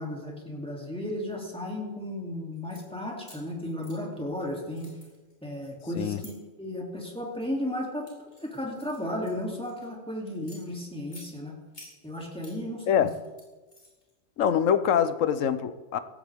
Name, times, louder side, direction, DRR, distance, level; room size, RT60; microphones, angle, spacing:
voice 1, 0.0-4.9 5.4-6.3 6.6-8.1 8.4-11.5 12.0-13.1, left 1 dB, 5° left, -2 dB, 2.8 m, -34 dB
sound 1, 2.5-2.8 3.2-4.4 4.7-6.3 7.0-7.3 7.8-9.9 10.3-11.3 11.7-12.6 12.9-14.1, left 1 dB, 35° left, 4.6 m, -52 dB
voice 2, 14.4-16.0, left 8 dB, 85° left, 13 dB, 1.1 m, -24 dB
16.5 x 15.5 x 3.6 m, 1.3 s
omnidirectional pair, 1.3 m